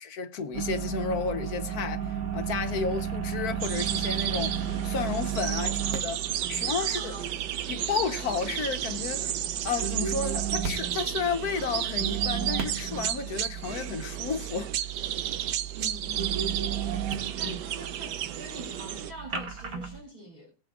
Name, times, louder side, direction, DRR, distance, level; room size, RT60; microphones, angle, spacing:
voice 1, 0.0-6.2 6.5-7.1 7.7-9.4 9.6-14.7 17.4-17.6, left 6 dB, 65° left, 1.4 m, -32 dB
sound 1, 0.5-20.0, right 8 dB, 60° right, 2.1 m, -34 dB
sound 2, 3.6-19.1, right 10 dB, 85° right, 1.3 m, -33 dB
voice 2, 6.8-7.4 15.7-16.7 17.3-20.5, right 1 dB, 25° right, 2.7 m, -45 dB
22.0 x 7.7 x 2.4 m
omnidirectional pair, 1.8 m